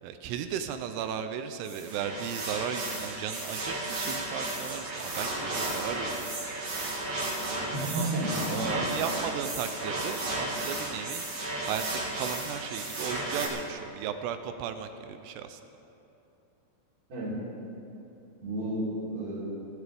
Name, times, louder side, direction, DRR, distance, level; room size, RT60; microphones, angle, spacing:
voice 1, 0.0-6.3 7.8-8.1 8.5-11.3 11.7-15.6, right 8 dB, 80° right, 9 dB, 2.5 m, -36 dB
sound 1, 1.6-13.5, right 2 dB, 60° right, 1.3 m, -33 dB
voice 2, 7.7-8.7 17.1-17.3 18.4-19.4, right 1 dB, 40° right, -8 dB, 4.5 m, -32 dB
20.5 x 12.0 x 3.5 m, 3.0 s
omnidirectional pair, 5.0 m